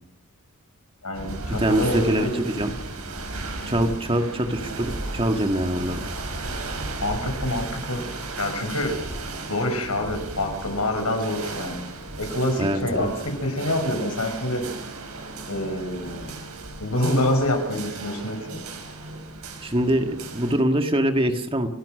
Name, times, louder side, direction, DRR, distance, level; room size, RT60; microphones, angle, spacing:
voice 1, 1.0-2.5 7.0-8.0 8.4-9.0 9.5-11.9 12.2-14.6 15.5-16.3 16.8-18.6, left 1 dB, 90° left, 5 dB, 5.8 m, -26 dB
sound 1, 1.1-20.5, right 2 dB, 85° right, 5.0 m, -35 dB
voice 2, 1.6-2.7 3.6-6.1 12.6-13.1 19.6-21.7, right 1 dB, 25° right, 6 dB, 1.7 m, -24 dB
29.5 x 13.5 x 6.6 m, 0.73 s
head